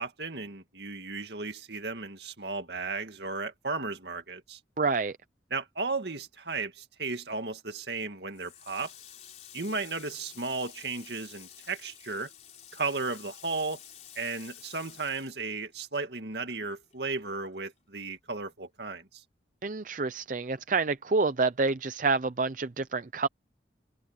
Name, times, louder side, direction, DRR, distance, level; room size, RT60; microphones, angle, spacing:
voice 1, 0.0-4.6 5.5-8.9 9.5-12.3 12.7-13.8 14.2-19.2, right 3 dB, 65° right, 2.1 m, -35 dB
voice 2, 4.8-5.2 19.6-23.3, right 4 dB, 45° right, 0.5 m, -28 dB
Water tap faucet, 8.3-16.2 16.5-17.8, left 10 dB, 40° left, 3.8 m, -51 dB
head